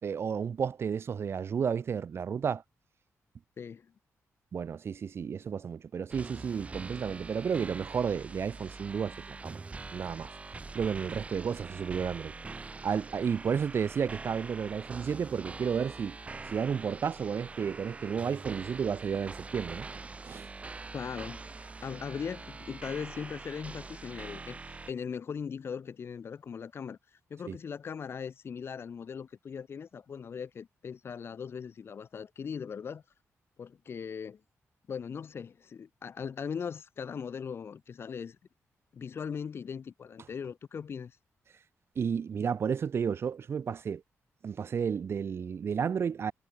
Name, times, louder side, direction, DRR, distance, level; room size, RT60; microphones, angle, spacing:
voice 1, 0.0-2.6 4.5-9.6 9.9-10.3 10.7-12.3 12.8-16.2 16.5-19.9 20.2-20.5 27.5-27.6 41.9-44.0 44.4-46.3, right 7 dB, 50° right, 4.9 m, -32 dB
voice 2, 3.6-3.9 20.9-27.0 27.3-33.0 33.6-34.4 34.9-38.4 38.9-41.2, left 6 dB, 50° left, 4.5 m, -39 dB
sound 1, 6.1-24.9, right 3 dB, 25° right, 6.9 m, -44 dB
wide cardioid pair, 155°, 5 cm